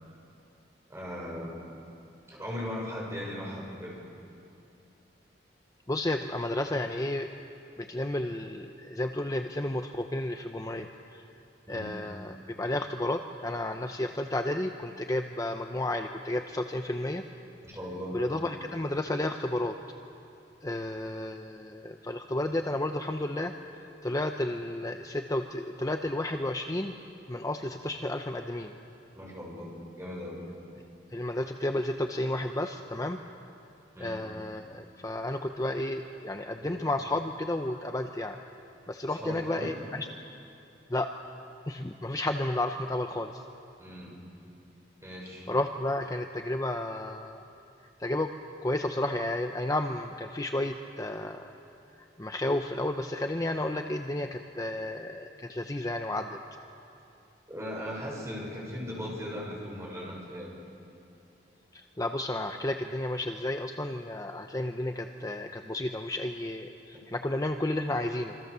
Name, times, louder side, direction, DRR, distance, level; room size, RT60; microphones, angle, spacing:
voice 1, 0.9-1.5 2.3-4.0 11.7-11.9 17.6-18.2 29.1-29.7 30.0-30.4 33.9-34.2 36.6-36.8 39.0-39.8 43.8-44.1 45.0-45.5 57.5-60.6, equal, 15° right, -3 dB, 6.4 m, -38 dB
voice 2, 5.9-7.3 7.8-11.2 11.7-17.2 18.1-19.8 20.6-26.9 27.3-28.8 31.1-33.2 34.0-38.4 38.9-40.1 40.9-41.1 41.7-43.4 45.5-47.4 48.0-48.3 48.6-51.5 52.2-56.4 61.7-68.4, left 1 dB, 20° left, 5 dB, 0.8 m, -32 dB
27.5 x 25.0 x 6.9 m, 2.7 s
head